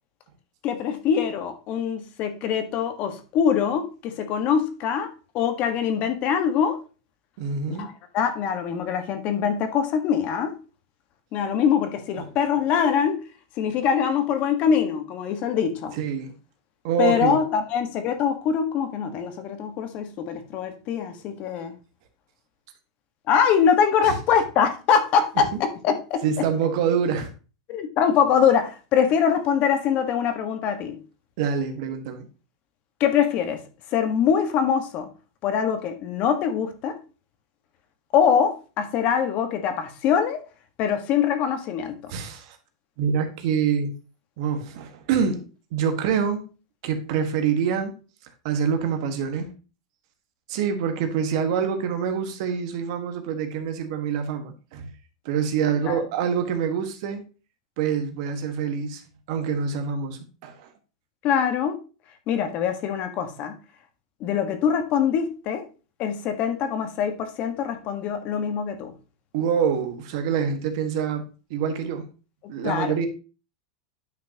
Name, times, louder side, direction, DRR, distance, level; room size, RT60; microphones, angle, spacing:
voice 1, 0.6-5.1 5.3-6.8 7.7-10.5 11.3-13.2 13.6-15.9 17.0-21.7 23.3-25.5 25.8-26.2 27.7-31.0 33.0-33.6 33.9-35.1 35.4-36.9 38.1-40.4 40.8-42.0 55.8-56.0 61.2-61.8 62.3-63.5 64.2-65.6 66.0-68.9 72.6-72.9, left 7 dB, 45° left, 1.5 m, -23 dB
voice 2, 7.4-7.9 12.2-12.3 15.9-16.3 16.8-17.4 24.0-24.1 26.2-27.3 31.4-32.2 42.1-42.6 43.0-43.9 44.4-46.4 46.8-47.9 48.4-49.5 50.5-54.9 55.2-57.2 57.8-59.0 59.3-60.7 69.3-72.0 72.5-73.1, right 7 dB, 60° right, 1.6 m, -26 dB
10.0 x 5.8 x 2.9 m
supercardioid pair, 130°, 3 cm